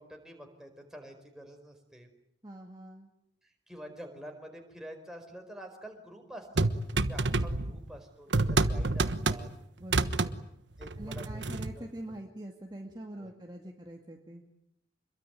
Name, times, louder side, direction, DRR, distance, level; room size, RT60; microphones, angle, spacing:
voice 1, 0.0-2.1 3.4-9.5 10.8-11.5 11.7-12.2 13.2-13.3, equal, 5° right, 3 dB, 4.7 m, -48 dB
voice 2, 2.4-3.1 9.8-10.4 11.0-14.4, right 1 dB, 25° right, 1 dB, 2.3 m, -44 dB
sound 1, 6.6-7.9 8.3-9.6 9.8-10.3 10.8-11.7, right 3 dB, 75° right, 1.3 m, -28 dB
26.5 x 22.5 x 9.4 m, 0.78 s
head